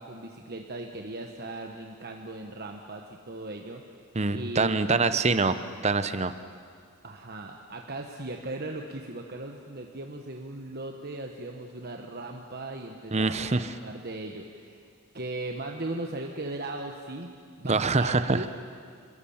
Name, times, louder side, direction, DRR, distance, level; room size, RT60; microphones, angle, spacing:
voice 1, 0.0-3.8 4.3-5.2 7.0-14.9 15.1-17.3 17.6-18.5, right 2 dB, 45° right, 2 dB, 1.3 m, -38 dB
voice 2, 4.1-5.6 5.8-6.3 13.1-13.7 17.7-18.5, right 3 dB, 30° right, 11 dB, 0.8 m, -25 dB
27.5 x 22.0 x 7.3 m, 2.2 s
head